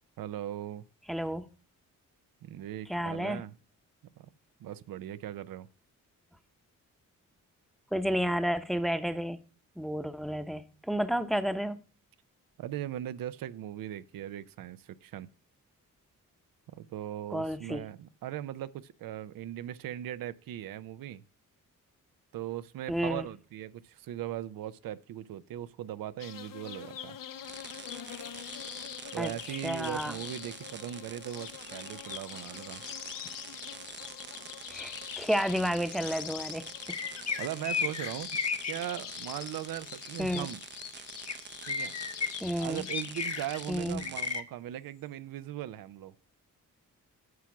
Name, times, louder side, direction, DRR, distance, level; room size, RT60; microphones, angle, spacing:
voice 1, 0.2-0.8 2.4-3.5 4.2-4.3 4.6-5.7 12.6-15.3 16.7-21.2 22.3-27.2 29.1-32.8 37.4-38.3 38.7-40.6 41.7-41.9 42.6-46.1, right 12 dB, 85° right, 0.5 m, -39 dB
voice 2, 1.1-1.5 2.9-3.4 7.9-9.4 9.8-11.8 17.3-17.8 22.9-23.3 29.2-29.3 29.6-30.1 34.7-37.0 40.2-40.5 42.4-42.8 43.7-44.0, equal, ahead, 0.8 m, -31 dB
sound 1, 26.2-43.9, left 9 dB, 75° left, 0.8 m, -44 dB
sound 2, 27.4-44.4, right 6 dB, 35° right, 0.6 m, -47 dB
sound 3, 36.9-38.7 41.3-41.4 41.6-42.3 42.9-43.6 44.0-44.4, left 5 dB, 50° left, 1.2 m, -32 dB
9.5 x 5.9 x 5.9 m
cardioid pair, 80°, 33 cm